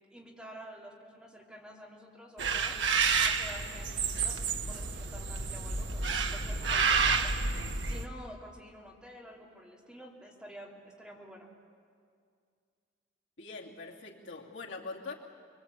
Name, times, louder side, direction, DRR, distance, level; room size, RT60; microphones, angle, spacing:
voice 1, 0.1-2.8 3.2-7.4 7.8-11.5, equal, 5° right, -4 dB, 3.2 m, -49 dB
sound 1, 2.4-8.0, right 5 dB, 75° right, 1.4 m, -30 dB
voice 2, 13.4-15.1, left 3 dB, 80° left, -2 dB, 2.7 m, -43 dB
25.5 x 23.0 x 8.5 m, 2.2 s
head